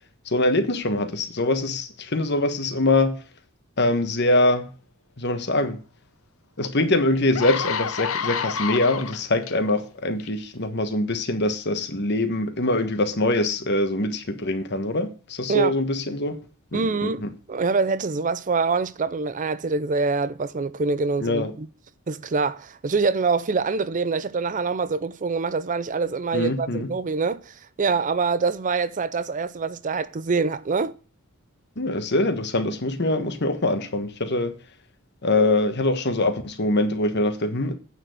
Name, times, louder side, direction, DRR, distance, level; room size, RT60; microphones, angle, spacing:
voice 1, 0.3-3.1 3.8-4.7 5.2-5.8 6.6-16.4 16.7-17.3 21.2-21.5 26.3-26.9 31.8-34.5 35.2-37.7, left 2 dB, 50° left, 1.3 m, -23 dB
sound 1, 6.6-6.7 7.1-9.5 10.2-10.4, left 6 dB, 65° left, 0.8 m, -29 dB
voice 2, 16.7-17.2 17.5-21.7 22.1-30.9, right 4 dB, 35° right, 0.5 m, -25 dB
8.9 x 6.4 x 6.5 m
head